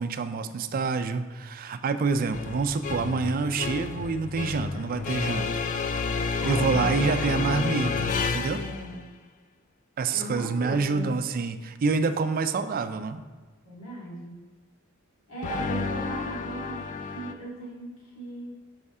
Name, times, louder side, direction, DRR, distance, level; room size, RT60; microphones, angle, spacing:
voice 1, 0.0-5.5 6.4-8.6 10.0-13.2, right 4 dB, 45° right, 10 dB, 0.4 m, -27 dB
sound 1, 2.3-9.0 15.4-17.3, left 5 dB, 40° left, 0.3 m, -30 dB
voice 2, 6.4-7.6 8.5-9.1 10.1-11.1 13.6-14.4 15.3-18.6, right 1 dB, 85° left, -6 dB, 2.0 m, -37 dB
5.5 x 5.4 x 3.5 m, 1.4 s
head